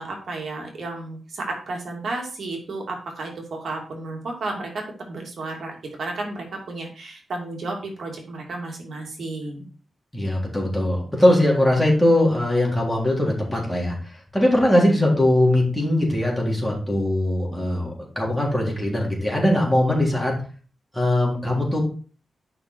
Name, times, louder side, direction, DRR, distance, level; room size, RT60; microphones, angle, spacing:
voice 1, 0.0-4.8 5.1-5.7 6.0-9.6, right 2 dB, 70° right, 1 dB, 2.8 m, -32 dB
voice 2, 10.1-17.9 18.2-20.3 20.9-21.8, left 1 dB, 5° left, -3 dB, 3.6 m, -20 dB
11.0 x 5.8 x 4.6 m, 0.38 s
wide cardioid pair, 125°, 0 cm